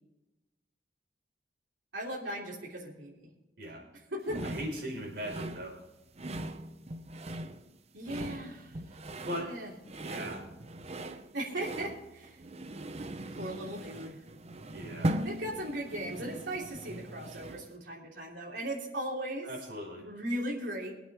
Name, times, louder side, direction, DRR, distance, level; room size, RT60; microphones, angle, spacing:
voice 1, 1.9-3.1 3.9-4.4 7.9-8.8 9.4-9.7 11.3-12.4 13.3-14.2 15.0-19.5 20.0-20.9, right 1 dB, 85° right, -4 dB, 3.2 m, -38 dB
sound 1, 4.3-17.8, right 1 dB, 35° right, 0.8 m, -40 dB
voice 2, 4.4-5.8 9.3-9.5 10.0-10.4 14.7-15.1 19.4-20.0, equal, 65° right, -2 dB, 5.2 m, -39 dB
23.0 x 8.6 x 3.6 m, 1.0 s
head